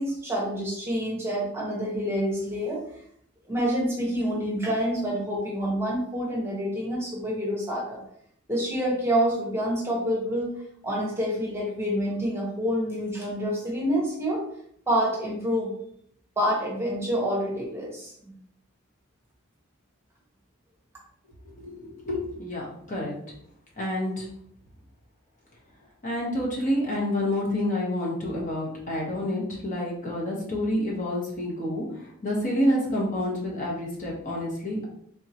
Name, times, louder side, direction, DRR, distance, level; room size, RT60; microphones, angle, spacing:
voice 1, 0.0-2.8 3.5-8.0 8.5-10.5 10.8-14.4 14.9-15.7 16.4-18.1, equal, 10° right, -4 dB, 1.1 m, -27 dB
voice 2, 21.5-23.1 23.8-24.3 26.0-34.9, left 1 dB, 40° left, -4 dB, 1.2 m, -28 dB
3.7 x 3.6 x 2.9 m, 0.66 s
head